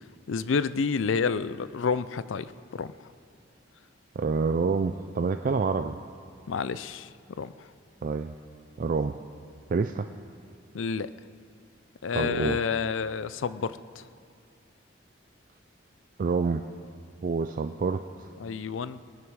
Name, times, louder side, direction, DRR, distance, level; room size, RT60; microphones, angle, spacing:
voice 1, 0.3-3.1 6.5-7.1 7.4-7.5 10.7-11.1 12.0-14.0 18.4-19.0, left 5 dB, 85° left, 15 dB, 0.5 m, -29 dB
voice 2, 4.2-6.0 8.0-8.3 8.8-9.2 9.7-10.1 12.1-12.6 16.2-16.6 17.2-18.0, right 4 dB, 45° right, 8 dB, 0.4 m, -27 dB
20.5 x 11.0 x 4.7 m, 2.3 s
head